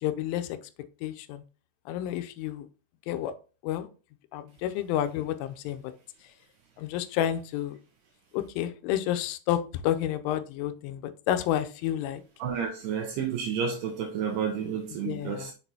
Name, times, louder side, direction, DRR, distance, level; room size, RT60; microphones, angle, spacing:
voice 1, 0.0-0.5 1.0-1.4 1.9-2.7 3.1-3.3 3.6-3.9 4.3-5.8 6.8-7.8 8.3-11.0 11.3-12.2 15.0-15.5, left 11 dB, 90° left, 3.1 m, -30 dB
voice 2, 12.4-15.5, right 7 dB, 80° right, 2.5 m, -31 dB
6.7 x 6.0 x 2.7 m
omnidirectional pair, 5.5 m